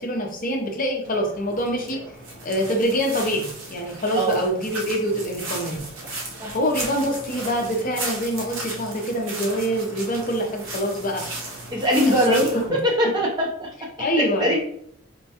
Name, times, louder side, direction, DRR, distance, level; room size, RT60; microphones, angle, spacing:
voice 1, 0.0-2.0 2.4-5.8 6.5-11.2 12.1-12.5 14.0-14.5, equal, 40° left, 1 dB, 0.6 m, -25 dB
sound 1, 1.0-12.7, right 2 dB, 70° right, 0.7 m, -35 dB
voice 2, 4.1-4.5 6.4-6.5 11.7-12.4 12.7-13.7 14.2-14.6, equal, 20° right, -1 dB, 0.5 m, -22 dB
4.4 x 2.2 x 2.7 m, 0.67 s
head